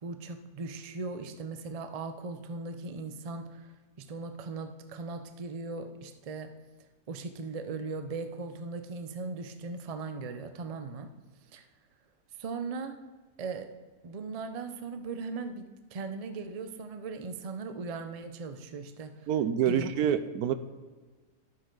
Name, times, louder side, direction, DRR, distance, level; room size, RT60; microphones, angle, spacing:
voice 1, 0.0-6.5 7.1-11.1 11.5-11.6 12.4-13.0 13.4-13.7 14.0-19.3 19.6-19.9, right 4 dB, 55° right, 8 dB, 0.4 m, -38 dB
voice 2, 19.3-20.5, right 9 dB, 85° right, 12 dB, 1.1 m, -27 dB
12.0 x 7.6 x 3.9 m, 1.4 s
omnidirectional pair, 1.6 m